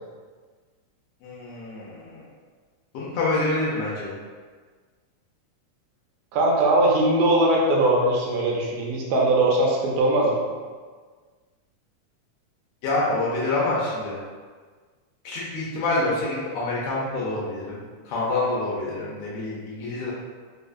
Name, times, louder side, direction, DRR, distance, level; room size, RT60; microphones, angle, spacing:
voice 1, 1.2-2.3 2.9-4.1 12.8-14.2 15.2-20.1, left 2 dB, 80° left, -6 dB, 1.7 m, -27 dB
voice 2, 6.3-10.4, right 1 dB, 80° right, -2 dB, 1.9 m, -20 dB
4.9 x 2.3 x 2.4 m, 1.5 s
omnidirectional pair, 3.5 m